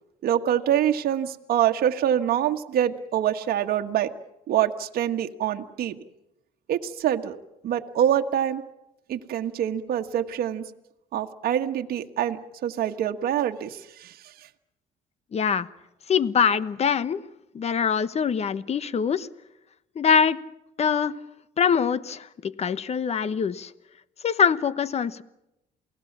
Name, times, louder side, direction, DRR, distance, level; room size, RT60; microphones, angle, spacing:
voice 1, 0.2-4.1 4.5-5.9 6.7-7.4 7.6-8.6 9.1-10.6 11.1-14.5, right 10 dB, 60° right, 1.5 m, -25 dB
voice 2, 15.3-15.7 16.1-17.2 17.5-19.3 19.9-20.4 20.8-21.2 21.6-23.7 24.2-25.2, left 7 dB, 40° left, 1.1 m, -23 dB
28.5 x 18.5 x 7.4 m
cardioid pair, 110°, 17 cm